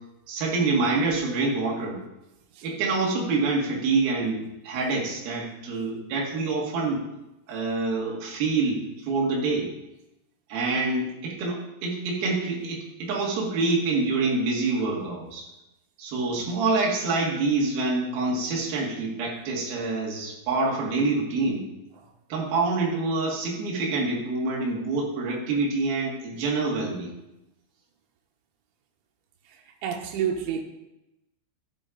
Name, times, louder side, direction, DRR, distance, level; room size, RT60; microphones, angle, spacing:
voice 1, 0.3-2.0 2.6-7.0 7.5-9.7 10.5-15.5 16.0-21.6 22.3-27.1, right 3 dB, 55° right, -3 dB, 3.6 m, -26 dB
voice 2, 29.8-30.6, right 8 dB, 85° right, 2 dB, 3.6 m, -28 dB
13.5 x 7.5 x 3.9 m, 0.92 s
omnidirectional pair, 5.5 m